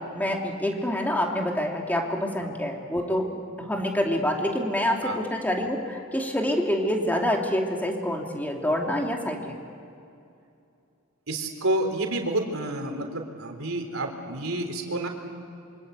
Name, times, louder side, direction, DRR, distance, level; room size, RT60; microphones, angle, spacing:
voice 1, 0.1-9.6, left 1 dB, 10° left, 1 dB, 2.8 m, -27 dB
voice 2, 11.3-15.1, right 1 dB, 75° right, 4 dB, 3.7 m, -29 dB
26.5 x 25.0 x 8.2 m, 2.6 s
head